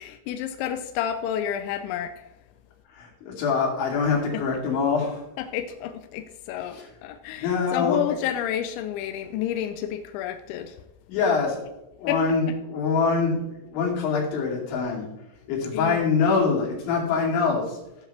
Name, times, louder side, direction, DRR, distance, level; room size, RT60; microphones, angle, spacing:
voice 1, 0.0-2.3 4.3-4.4 5.4-10.8 12.1-12.2 15.7-16.1, left 10 dB, 80° left, 7 dB, 2.7 m, -30 dB
voice 2, 2.9-5.2 6.7-6.9 7.4-8.0 11.1-11.6 12.0-15.1 15.5-17.8, left 5 dB, 65° left, -3 dB, 4.9 m, -24 dB
15.0 x 7.3 x 3.4 m, 0.90 s
omnidirectional pair, 5.8 m